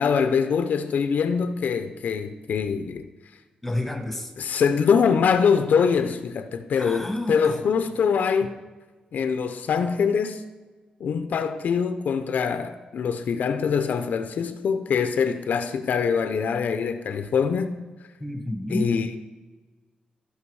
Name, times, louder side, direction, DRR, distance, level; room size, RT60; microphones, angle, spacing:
voice 1, 0.0-3.1 4.4-8.5 9.1-10.4 11.0-17.8 18.7-19.2, left 6 dB, 70° left, 0.6 m, -24 dB
voice 2, 3.6-4.3 6.8-7.6 18.2-18.9, left 1 dB, 5° left, 1.2 m, -29 dB
14.0 x 5.8 x 4.7 m
wide cardioid pair, 150°, 3 cm